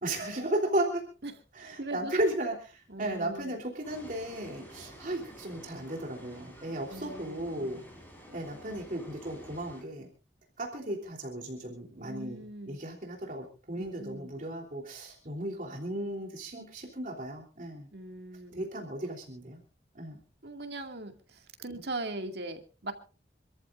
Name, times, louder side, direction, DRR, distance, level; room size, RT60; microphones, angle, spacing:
voice 1, 0.0-1.0 1.5-7.8 8.3-10.1 10.6-17.9 18.5-19.6 19.9-20.2, right 1 dB, 50° right, 0 dB, 3.4 m, -35 dB
voice 2, 1.8-2.1 2.9-3.6 6.9-7.9 12.0-12.8 13.8-14.3 17.9-18.7 20.4-22.9, right 2 dB, 65° right, 4 dB, 2.3 m, -40 dB
sound 1, 3.8-9.8, equal, 10° left, 4.9 m, -50 dB
27.0 x 14.0 x 2.5 m, 0.35 s
head